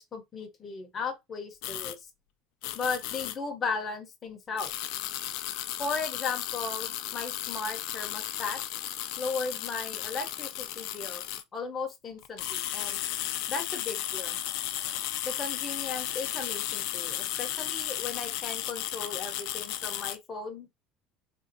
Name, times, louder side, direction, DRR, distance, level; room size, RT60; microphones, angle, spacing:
voice 1, 0.0-2.1 2.7-4.7 5.8-8.6 9.2-11.2 11.5-13.0 13.5-14.4 15.2-20.7, left 4 dB, 25° left, 0.8 m, -36 dB
sound 1, 1.6-2.0 2.6-3.4 4.6-11.4 12.2-20.2, left 13 dB, 75° left, 0.4 m, -34 dB
3.5 x 2.6 x 2.6 m
cardioid pair, 145°, 0 cm